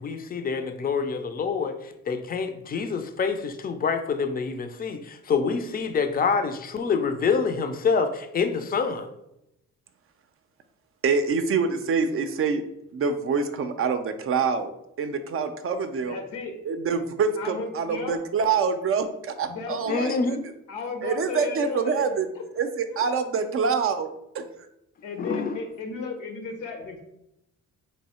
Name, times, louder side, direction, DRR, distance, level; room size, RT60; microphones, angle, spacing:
voice 1, 0.0-9.1 19.9-20.4 25.2-25.5, left 5 dB, 30° left, 8 dB, 0.5 m, -26 dB
voice 2, 11.0-12.6 12.9-14.7 15.0-16.2 16.7-20.4 21.0-22.3 22.6-24.1 24.3-24.4, right 5 dB, 45° right, 8 dB, 0.5 m, -26 dB
voice 3, 16.1-16.5 17.4-18.2 19.4-20.1 20.7-22.1 22.4-22.5 22.9-23.1 25.0-27.0, left 4 dB, 85° left, 3 dB, 1.0 m, -34 dB
3.1 x 2.7 x 4.2 m, 0.84 s
cardioid pair, 90°, 30 cm